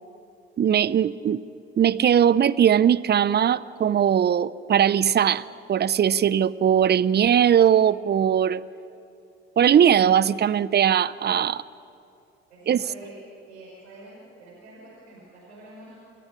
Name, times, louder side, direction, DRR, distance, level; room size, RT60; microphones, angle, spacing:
voice 1, 0.6-1.4 1.8-8.6 9.6-11.6 12.7-12.8, right 9 dB, 30° right, 19 dB, 0.7 m, -20 dB
voice 2, 12.5-16.0, right 1 dB, 85° right, -5 dB, 5.1 m, -46 dB
28.0 x 14.0 x 10.0 m, 2.6 s
hypercardioid pair, 60°, 32 cm